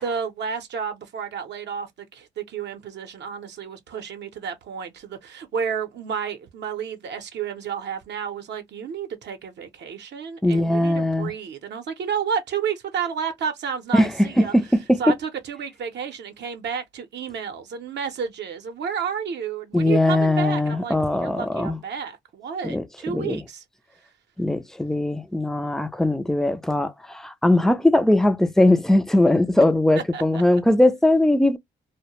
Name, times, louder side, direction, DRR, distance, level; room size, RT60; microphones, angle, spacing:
voice 1, 0.0-14.5 15.0-23.6 30.1-30.4, right 7 dB, 60° right, 0.6 m, -31 dB
voice 2, 10.4-11.3 13.9-15.0 19.7-21.8 22.6-23.4 24.4-31.6, left 1 dB, ahead, 0.3 m, -20 dB
2.1 x 2.1 x 2.9 m
cardioid pair, 90°, 20 cm